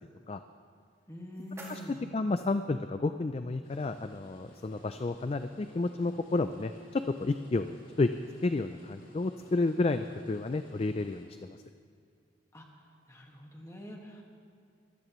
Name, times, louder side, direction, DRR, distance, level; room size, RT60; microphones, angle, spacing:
sound 1, 0.8-2.8, right 1 dB, 15° right, 2.0 m, -52 dB
voice 1, 1.1-2.0 12.5-12.6 13.1-14.2, equal, 15° left, 0 dB, 1.7 m, -45 dB
voice 2, 2.1-8.1 8.4-11.6, left 3 dB, 30° left, 9 dB, 0.3 m, -31 dB
sound 2, 3.6-11.2, left 1 dB, 50° left, 4.1 m, -56 dB
23.5 x 15.5 x 3.1 m, 2.3 s
head